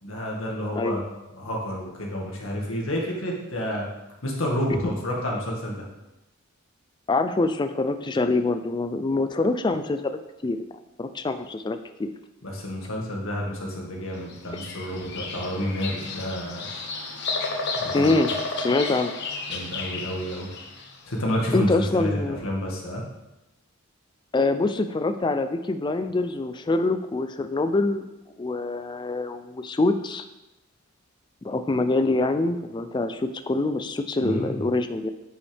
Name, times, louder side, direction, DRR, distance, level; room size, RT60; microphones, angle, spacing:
voice 1, 0.0-1.0 1.3-3.9 4.2-5.9 12.4-16.7 17.8-18.1 19.5-20.5 21.1-23.0 34.2-34.6, equal, 70° left, -1 dB, 1.8 m, -29 dB
voice 2, 7.1-10.7 11.0-12.1 17.9-19.1 21.5-22.4 24.3-28.1 28.4-30.3 31.4-35.1, left 2 dB, 20° left, 9 dB, 0.4 m, -25 dB
Bird vocalization bird call bird song, 14.3-20.9, left 3 dB, 55° left, 1.0 m, -32 dB
9.6 x 5.6 x 3.4 m, 0.95 s
head